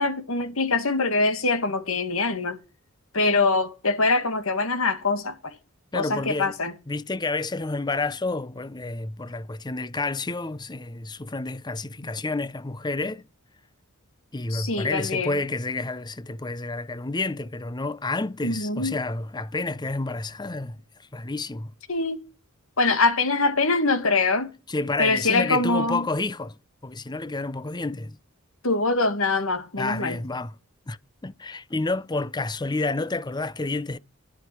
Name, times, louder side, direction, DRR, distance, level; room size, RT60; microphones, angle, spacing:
voice 1, 0.0-2.6 3.1-5.5 5.9-6.7 14.5-15.3 18.4-18.9 21.9-22.2 22.8-24.5 25.0-26.0 28.6-30.2, left 3 dB, 75° left, 2.2 m, -23 dB
voice 2, 5.9-6.5 6.9-13.3 14.3-20.8 21.1-21.7 24.7-26.6 26.8-28.2 29.8-30.5 30.9-34.0, left 3 dB, 20° left, 0.6 m, -29 dB
11.0 x 10.5 x 6.1 m
head